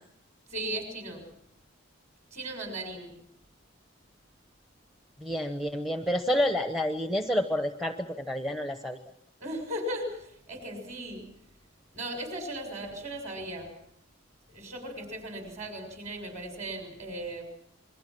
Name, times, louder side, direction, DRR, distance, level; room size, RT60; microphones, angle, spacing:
voice 1, 0.5-1.3 2.3-3.1 9.4-11.3 11.9-13.7 14.5-17.4, right 1 dB, 35° right, 5 dB, 6.7 m, -37 dB
voice 2, 5.2-9.0, equal, ahead, 6 dB, 0.9 m, -29 dB
28.0 x 22.5 x 6.0 m, 0.70 s
head